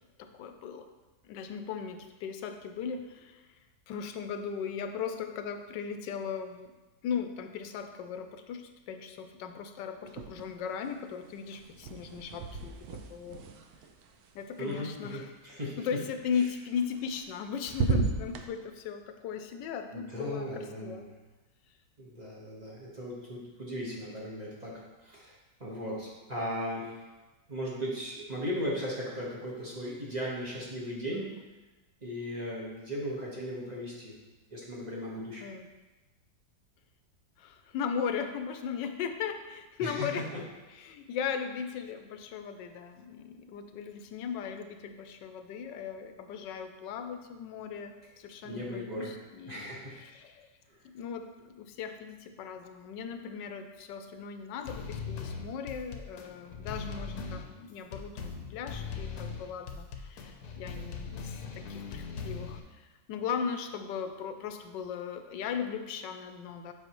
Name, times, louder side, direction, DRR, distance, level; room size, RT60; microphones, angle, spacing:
voice 1, 0.2-0.9 1.2-3.5 3.9-6.7 7.0-13.4 14.3-15.3 15.8-21.0 35.4-35.7 37.4-40.2 40.7-49.7 50.0-50.5 50.8-66.7, left 7 dB, 90° left, 7 dB, 1.3 m, -37 dB
sound 1, 10.1-10.8 11.0-15.2 16.8-17.4 17.7-18.5, right 5 dB, 70° right, 1.0 m, -35 dB
voice 2, 14.6-15.8 16.4-16.5 19.9-21.0 22.0-25.3 25.6-27.0 27.5-31.4 32.0-34.2 34.5-35.4 39.8-40.2 48.4-49.1 49.5-50.0, equal, 25° right, -5 dB, 1.2 m, -37 dB
sound 2, 54.6-62.6, left 5 dB, 65° left, 1.1 m, -40 dB
7.8 x 5.5 x 3.0 m, 1.2 s
omnidirectional pair, 1.9 m